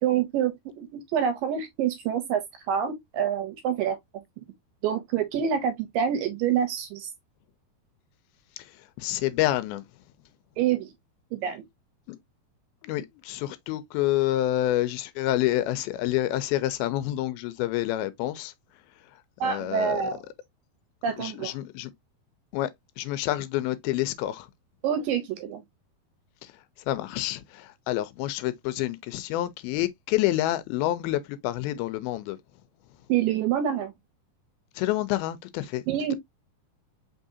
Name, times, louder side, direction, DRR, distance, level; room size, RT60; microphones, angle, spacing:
voice 1, 0.0-2.4 2.7-4.0 4.8-7.1 10.6-10.9 11.3-11.6 19.4-20.2 21.0-21.5 24.8-25.6 33.1-33.9 35.9-36.1, right 8 dB, 80° right, 2.1 m, -26 dB
voice 2, 9.0-9.8 12.1-12.2 12.8-18.5 19.4-20.0 21.2-21.9 22.5-22.7 23.0-24.5 26.9-32.4 34.8-35.8, left 14 dB, 80° left, 2.3 m, -28 dB
5.4 x 3.6 x 2.6 m
omnidirectional pair, 4.5 m